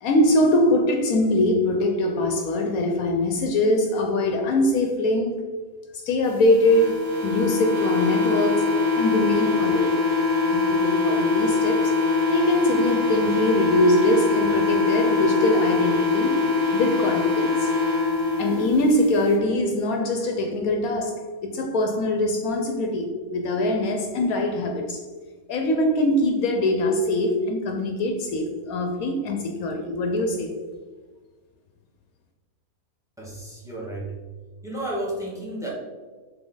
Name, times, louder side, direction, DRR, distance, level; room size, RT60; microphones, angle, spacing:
voice 1, 0.0-5.5 6.0-8.7 9.0-10.0 10.5-11.9 12.3-17.7 18.4-25.0 25.5-30.5, left 1 dB, 70° left, 3 dB, 1.1 m, -23 dB
sound 1, 6.6-18.7, left 3 dB, 70° right, 1.7 m, -23 dB
voice 2, 33.2-34.2 34.6-35.7, right 1 dB, ahead, -4 dB, 1.7 m, -32 dB
7.1 x 3.7 x 3.8 m, 1.4 s
omnidirectional pair, 1.6 m